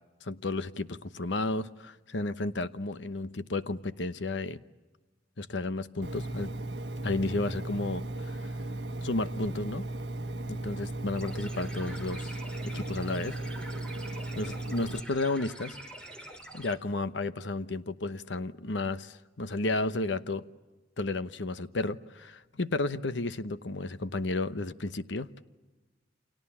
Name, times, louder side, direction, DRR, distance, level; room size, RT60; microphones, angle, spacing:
voice 1, 0.2-4.6 5.4-6.5 7.0-8.5 9.0-9.9 10.5-13.3 14.4-15.8 16.5-20.5 21.0-25.3, left 2 dB, 75° left, 13 dB, 1.0 m, -32 dB
Engine, 6.0-15.0, right 2 dB, 65° right, 1.5 m, -36 dB
sound 1, 11.2-16.7, right 1 dB, 5° left, 3.5 m, -46 dB
29.5 x 27.0 x 7.2 m, 1.2 s
head